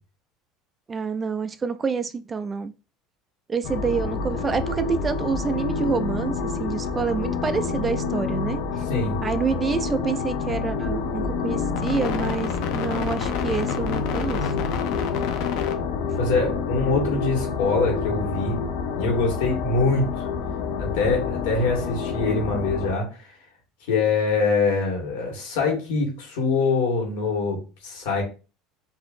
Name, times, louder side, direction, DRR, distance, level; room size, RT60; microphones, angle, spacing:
voice 1, 0.9-2.7 3.5-8.6 9.2-14.5, right 5 dB, 20° right, 0.3 m, -27 dB
sound 1, 3.6-22.9, left 5 dB, 65° left, 0.6 m, -27 dB
voice 2, 16.2-18.6 19.0-20.3 20.8-23.3 23.9-28.2, left 3 dB, 85° left, 1.9 m, -24 dB
4.4 x 2.8 x 2.6 m
supercardioid pair, 125°, 0 cm